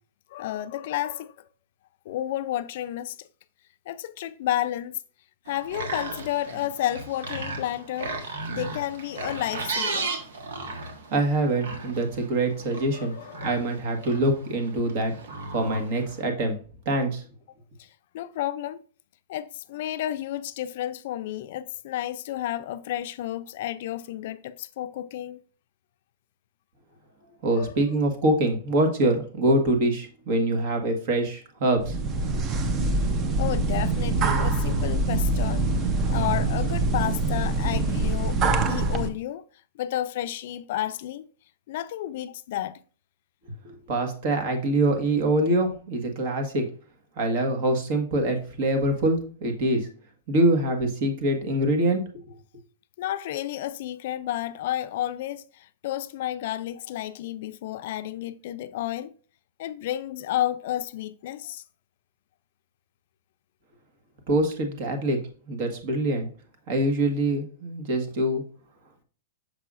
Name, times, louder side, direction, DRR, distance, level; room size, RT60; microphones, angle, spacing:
voice 1, 0.3-1.3 2.1-3.3 3.9-5.0 5.5-10.1 12.9-13.6 14.0-14.2 17.8-17.9 18.1-18.8 19.3-25.4 27.5-27.8 33.4-38.4 38.6-39.4 39.8-41.2 41.7-42.8 53.0-59.1 59.6-61.6, left 13 dB, 60° left, 0.4 m, -31 dB
sound 1, 5.5-16.3, right 3 dB, 80° right, 1.3 m, -36 dB
voice 2, 11.1-13.1 13.4-15.1 15.5-16.6 16.8-17.2 27.4-32.0 43.6-46.6 47.2-49.9 50.3-52.2 64.3-65.2 65.5-66.2 66.7-68.4, right 1 dB, 50° right, 1.6 m, -24 dB
sound 2, 31.8-39.1, right 2 dB, 25° right, 0.7 m, -24 dB
6.7 x 5.6 x 2.5 m
hypercardioid pair, 140°, 0 cm